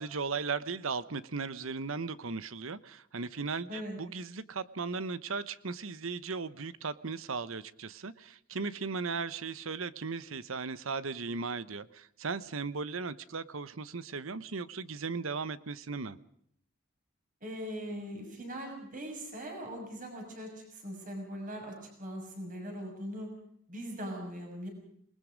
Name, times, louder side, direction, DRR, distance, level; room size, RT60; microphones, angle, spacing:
voice 1, 0.0-16.2, right 4 dB, 75° right, 16 dB, 0.9 m, -37 dB
voice 2, 17.4-21.7 22.0-23.3 23.7-24.7, equal, 40° right, 2 dB, 6.3 m, -40 dB
27.5 x 20.0 x 5.1 m, 0.68 s
head